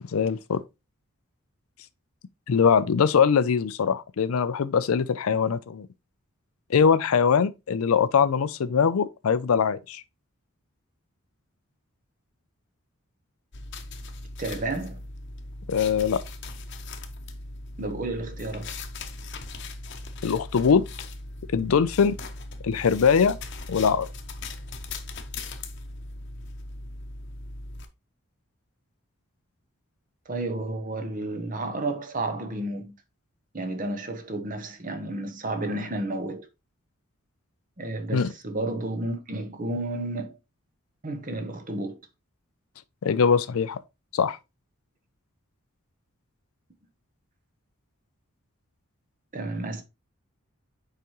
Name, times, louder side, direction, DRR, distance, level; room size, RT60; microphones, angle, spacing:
voice 1, 0.1-0.6 2.5-5.9 6.7-10.0 15.7-16.2 20.2-20.9 21.5-22.2 22.6-23.4 23.7-24.1 38.1-38.3 43.0-43.8 44.1-44.4, left 6 dB, 80° left, 0.4 m, -22 dB
sound 1, 13.5-27.9, left 2 dB, 55° left, 0.9 m, -39 dB
voice 2, 14.4-15.0 17.8-18.7 30.3-32.9 33.5-36.5 37.8-40.4 41.0-42.0 49.3-49.8, right 2 dB, 40° right, 1.0 m, -31 dB
6.9 x 4.9 x 3.0 m
head